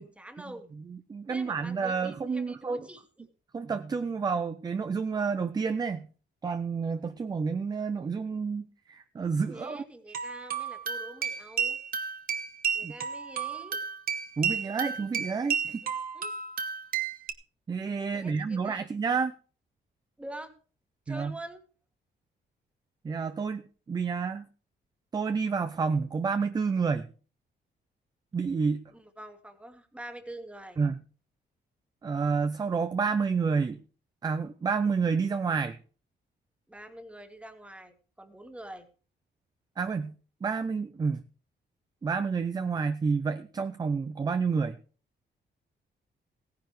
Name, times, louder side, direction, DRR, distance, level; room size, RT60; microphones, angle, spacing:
voice 1, 0.0-0.7 1.3-3.3 9.5-11.8 12.7-13.8 15.8-16.3 18.1-18.9 20.2-20.5 21.1-21.6 28.9-30.8 36.7-38.8, right 1 dB, 5° right, 7 dB, 1.6 m, -45 dB
voice 2, 0.9-2.9 3.5-6.1 6.4-9.8 12.8-12.9 14.4-15.8 17.7-19.3 21.1-21.3 23.0-24.5 25.1-27.1 28.3-28.8 30.8-31.0 32.0-33.8 34.2-35.8 39.8-40.1 40.4-41.2 42.0-44.8, right 5 dB, 20° right, 11 dB, 0.5 m, -29 dB
sound 1, 10.1-17.3, right 7 dB, 50° right, 1.1 m, -32 dB
17.0 x 10.5 x 3.2 m, 0.37 s
wide cardioid pair, 165°, 19 cm